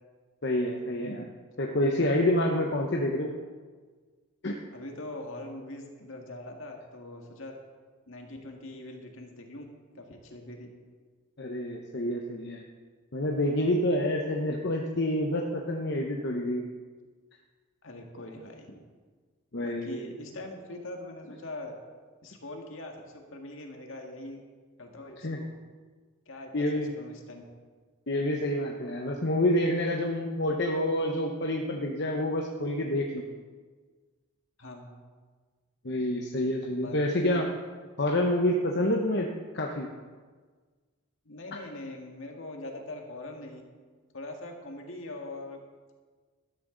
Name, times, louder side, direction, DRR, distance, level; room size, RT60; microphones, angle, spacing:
voice 1, 0.4-1.3 1.6-3.3 4.4-4.6 11.4-12.6 13.1-16.6 19.5-20.0 25.2-25.4 26.5-26.9 28.1-33.2 35.8-37.5 38.0-39.3 39.5-39.9, left 1 dB, 55° left, 1 dB, 0.9 m, -28 dB
voice 2, 4.7-7.5 8.1-9.7 9.9-10.7 17.8-18.8 19.6-21.8 22.2-24.4 24.8-25.6 26.3-27.4 34.6-34.9 36.8-37.4 41.3-43.6 44.1-45.6, left 1 dB, 70° left, 1 dB, 2.0 m, -42 dB
13.5 x 12.5 x 3.9 m, 1.5 s
head